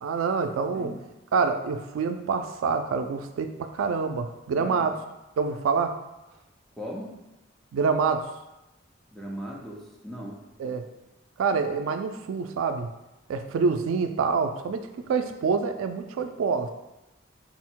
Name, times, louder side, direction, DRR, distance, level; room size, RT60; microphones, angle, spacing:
voice 1, 0.0-1.0 1.3-5.0 5.4-5.9 7.7-8.2 10.6-10.8 11.4-12.9 13.3-16.7, right 5 dB, 85° right, 8 dB, 0.3 m, -26 dB
voice 2, 6.8-7.1 9.1-10.4, equal, ahead, -3 dB, 0.5 m, -38 dB
3.9 x 2.1 x 4.4 m, 0.97 s
head